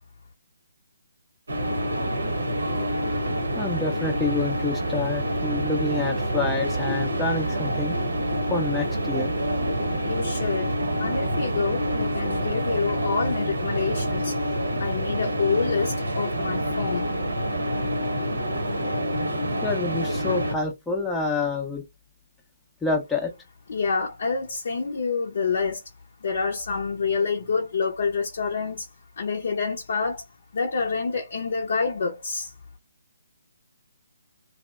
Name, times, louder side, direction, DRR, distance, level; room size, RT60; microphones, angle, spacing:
sound 1, 1.5-20.6, equal, 75° right, 0.8 m, -27 dB
voice 1, 3.6-7.9 8.5-9.3 19.6-21.8 22.8-23.3, left 3 dB, 5° left, 0.5 m, -27 dB
voice 2, 10.0-10.7 11.0-14.4 14.8-17.1 23.7-25.8 26.2-28.9 29.2-30.3 30.5-32.5, left 5 dB, 55° left, 0.5 m, -27 dB
2.7 x 2.0 x 2.3 m
figure-of-eight pair, 145°, 0 cm